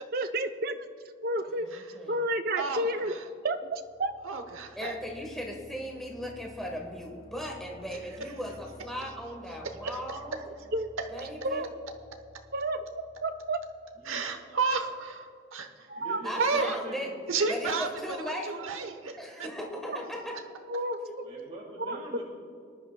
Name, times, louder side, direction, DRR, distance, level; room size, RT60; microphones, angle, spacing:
voice 1, 0.1-0.8 1.2-1.6 2.1-3.1 3.4-4.1 10.7-10.9 11.4-11.7 12.5-12.9 13.2-13.6 15.9-16.2 20.7-21.0 21.9-22.0, right 1 dB, 50° right, 7 dB, 0.6 m, -30 dB
voice 2, 1.5-2.2 4.8-10.4 11.1-11.7 16.2-17.1 17.5-18.5 19.2-20.4 21.0-21.2, equal, ahead, -1 dB, 1.2 m, -37 dB
voice 3, 2.6-3.2 4.2-5.0 14.0-15.9 16.4-16.8 17.3-17.9 18.3-19.5, right 4 dB, 85° right, 6 dB, 0.9 m, -31 dB
sound 1, 3.6-14.4, equal, 35° left, 2.2 m, -54 dB
voice 4, 15.9-17.1 21.2-22.2, equal, 30° right, -3 dB, 1.7 m, -43 dB
20.0 x 11.0 x 2.2 m, 2.3 s
head